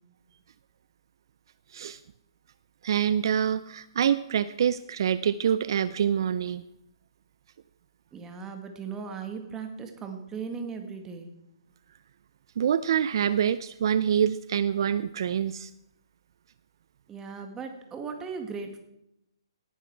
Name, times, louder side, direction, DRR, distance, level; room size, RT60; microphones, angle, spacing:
voice 1, 2.8-6.6 12.6-15.7, right 8 dB, 60° right, 15 dB, 0.5 m, -26 dB
voice 2, 8.1-11.3 17.1-18.8, right 5 dB, 15° right, 5 dB, 1.9 m, -37 dB
18.5 x 10.0 x 4.6 m, 0.81 s
hypercardioid pair, 145°, 3 cm